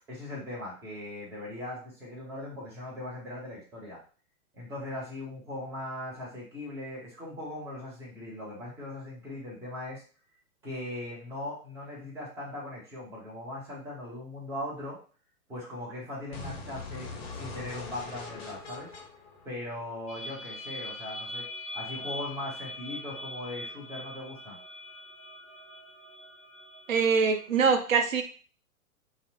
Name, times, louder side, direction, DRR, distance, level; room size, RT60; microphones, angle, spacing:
voice 1, 0.1-4.0 4.5-10.0 10.6-15.0 15.5-18.9 19.4-21.4 21.7-24.6, left 1 dB, 5° right, -6 dB, 0.5 m, -39 dB
sound 1, 16.3-20.3, left 3 dB, 45° left, 0.6 m, -42 dB
sound 2, 20.1-27.6, left 1 dB, 15° left, 1.3 m, -42 dB
voice 2, 26.9-28.2, right 5 dB, 65° right, 6 dB, 0.6 m, -23 dB
2.7 x 2.0 x 2.7 m, 0.38 s
figure-of-eight pair, 110°, 44 cm